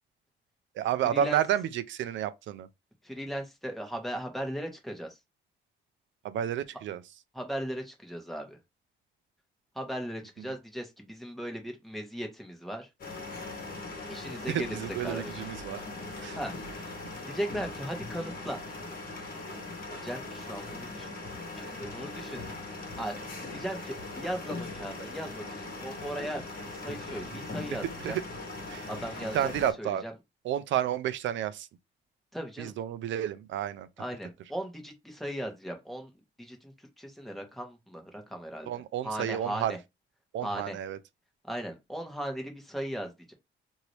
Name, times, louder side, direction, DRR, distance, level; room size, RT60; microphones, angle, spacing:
voice 1, 0.8-2.7 6.2-7.0 14.5-15.8 16.2-16.4 28.0-28.2 28.7-28.9 29.3-30.0 30.4-31.7 32.6-33.9 38.7-39.8 40.3-41.0, right 10 dB, 70° right, 0.5 m, -30 dB
voice 2, 3.0-5.1 7.3-8.6 9.7-12.9 14.1-15.4 16.4-16.5 16.8-16.9 17.2-18.6 20.0-21.2 21.6-22.5 23.0-28.2 28.9-29.5 29.8-30.1 32.3-32.7 34.0-36.1 36.4-38.7 39.0-39.8 40.4-40.8 41.4-43.3, equal, ahead, 1.1 m, -37 dB
sound 1, 13.0-29.7, left 2 dB, 45° left, 1.2 m, -40 dB
2.8 x 2.7 x 3.1 m
cardioid pair, 90°, 20 cm